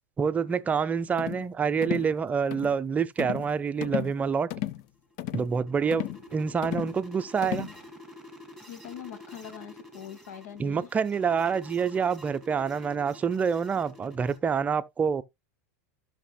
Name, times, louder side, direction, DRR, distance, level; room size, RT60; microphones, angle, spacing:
voice 1, 0.2-4.5 5.3-7.7 10.6-15.2, right 6 dB, 20° right, 0.5 m, -27 dB
Plastic Rattling Various, 1.2-1.5 1.8-2.1 2.5-2.8 3.2-3.5 3.8-4.2 4.5-4.8 5.2-5.5 5.9-6.2 6.6-7.0 7.4-7.8, left 14 dB, 55° left, 0.5 m, -34 dB
sound 1, 5.0-14.4, left 1 dB, 5° left, 1.9 m, -49 dB
voice 2, 8.7-10.9, left 9 dB, 80° left, 1.6 m, -42 dB
14.5 x 5.9 x 2.2 m
supercardioid pair, 125°, 8 cm